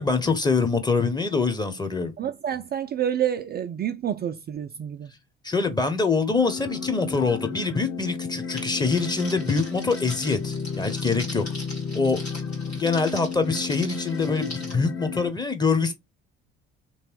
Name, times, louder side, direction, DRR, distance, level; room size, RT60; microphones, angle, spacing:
voice 1, 0.0-2.1 5.4-11.4 11.9-12.2 12.7-15.9, left 4 dB, 15° left, 1.0 m, -24 dB
voice 2, 2.2-5.1, right 10 dB, 30° right, 0.5 m, -28 dB
sound 1, 6.4-15.3, left 5 dB, 40° left, 1.2 m, -33 dB
Crackle, 8.6-14.7, left 1 dB, 85° left, 2.0 m, -41 dB
3.3 x 3.1 x 4.6 m
figure-of-eight pair, 55°, 32 cm